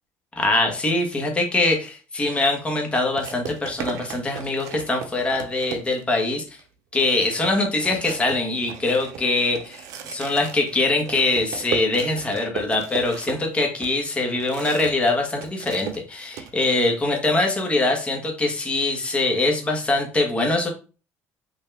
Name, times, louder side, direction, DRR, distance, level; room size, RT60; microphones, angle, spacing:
voice 1, 0.4-6.4 6.9-20.7, left 2 dB, 20° left, 2 dB, 1.3 m, -23 dB
sound 1, 2.2-2.4 3.2-6.2 6.6-6.7 7.0-15.1 15.4-16.5, right 7 dB, 65° right, 0.7 m, -36 dB
5.6 x 2.7 x 3.4 m, 0.35 s
cardioid pair, 135°, 6 cm